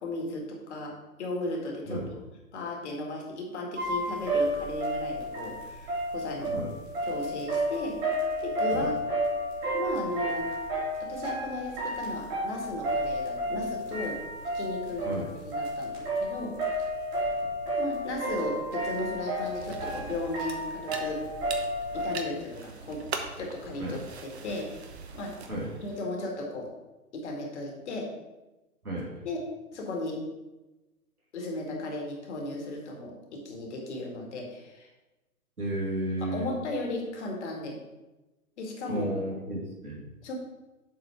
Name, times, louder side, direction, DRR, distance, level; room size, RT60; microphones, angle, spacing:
voice 1, 0.0-2.0 2.5-6.5 7.0-8.0 8.4-8.9 9.7-10.5 11.0-14.2 14.5-15.1 15.4-16.9 17.8-21.2 21.9-23.0 23.4-24.7 25.1-25.3 25.8-26.7 27.1-28.1 29.2-29.4 29.7-30.2 31.3-34.9 36.2-37.8 38.6-39.1 40.2-40.3, left 2 dB, 50° left, 0 dB, 2.1 m, -35 dB
sound 1, 3.8-22.1, right 1 dB, 30° right, 2.9 m, -31 dB
sound 2, 19.5-26.0, right 5 dB, 45° right, 1.0 m, -41 dB
voice 2, 35.6-36.5 38.9-40.0, right 1 dB, 80° right, -4 dB, 3.0 m, -33 dB
7.3 x 4.5 x 5.8 m, 1.1 s
figure-of-eight pair, 120°, 44 cm